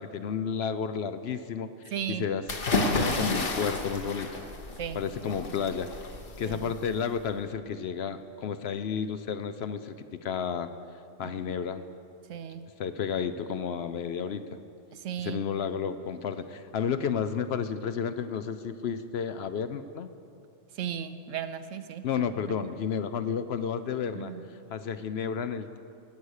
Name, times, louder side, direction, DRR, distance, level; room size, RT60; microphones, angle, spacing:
voice 1, 0.0-4.4 4.9-5.9 6.4-10.7 11.2-11.8 12.8-14.6 15.2-20.1 22.0-25.8, left 7 dB, 65° left, 11 dB, 0.7 m, -32 dB
voice 2, 1.9-2.3 4.8-5.0 5.3-5.4 6.4-6.7 11.2-11.3 12.3-12.6 14.9-15.4 20.7-22.0 22.4-22.5 24.1-24.5, right 9 dB, 80° right, 10 dB, 1.0 m, -36 dB
sound 1, 2.5-7.3, left 2 dB, 50° left, 1.2 m, -31 dB
18.0 x 8.3 x 6.4 m, 2.6 s
omnidirectional pair, 1.3 m